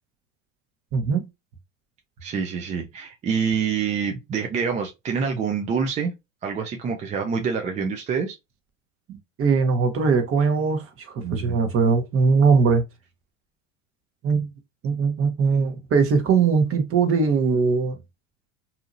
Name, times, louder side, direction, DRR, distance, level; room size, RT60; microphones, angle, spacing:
voice 1, 0.9-1.3 9.1-12.8 14.2-14.5 14.8-18.0, right 5 dB, 35° right, 0.9 m, -21 dB
voice 2, 2.2-6.1 6.4-8.4, right 6 dB, 20° right, 0.3 m, -26 dB
2.7 x 2.7 x 2.5 m
hypercardioid pair, 95°, 40 cm